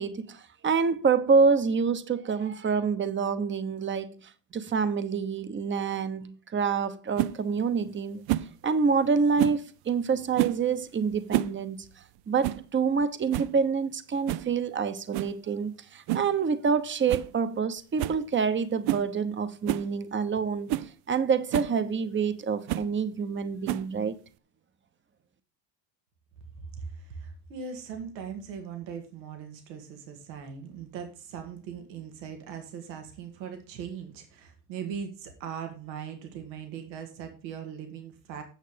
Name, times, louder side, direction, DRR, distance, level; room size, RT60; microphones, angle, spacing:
voice 1, 0.0-4.1 4.5-8.2 8.6-11.8 12.3-20.7 21.1-24.1, right 5 dB, 25° right, 1.0 m, -27 dB
sound 1, 7.2-7.3 8.3-8.5 9.4-9.6 10.3-10.6 11.1-11.6 11.8-11.9 12.4-12.7 13.0-13.1 13.3-13.6 14.3-14.5 15.1-15.4 16.1-16.3 16.7-16.8 17.1-17.3 17.6-17.7 18.0-18.2 18.8-19.1 19.7-19.9 20.4-20.5 20.7-20.9 21.5-21.7 22.7-22.9 23.7-24.0, right 14 dB, 50° right, 0.6 m, -29 dB
voice 2, 26.6-38.4, right 7 dB, 90° right, 2.1 m, -40 dB
9.1 x 6.4 x 5.1 m
supercardioid pair, 100°, 50 cm